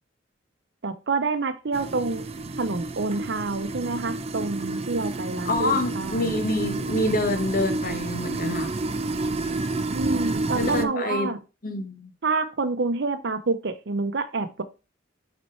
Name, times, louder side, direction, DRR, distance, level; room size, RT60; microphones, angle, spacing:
voice 1, 0.8-2.3 2.6-6.4 9.9-11.4 12.2-14.6, right 3 dB, 65° right, 0.8 m, -28 dB
sound 1, 1.7-10.8, right 2 dB, 35° right, 0.4 m, -30 dB
voice 2, 5.4-8.7 10.6-11.3 11.6-12.1, left 2 dB, 50° left, 1.2 m, -26 dB
5.9 x 4.3 x 4.5 m
head